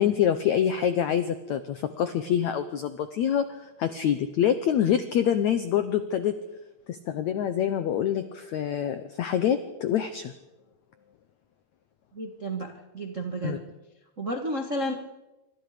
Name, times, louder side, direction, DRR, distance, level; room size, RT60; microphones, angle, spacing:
voice 1, 0.0-6.3 6.9-10.3 13.4-13.6, left 9 dB, 80° left, 10 dB, 1.6 m, -26 dB
voice 2, 12.1-13.6 14.2-15.1, right 1 dB, 50° right, 3 dB, 0.8 m, -32 dB
26.5 x 25.5 x 5.1 m, 1.0 s
omnidirectional pair, 4.6 m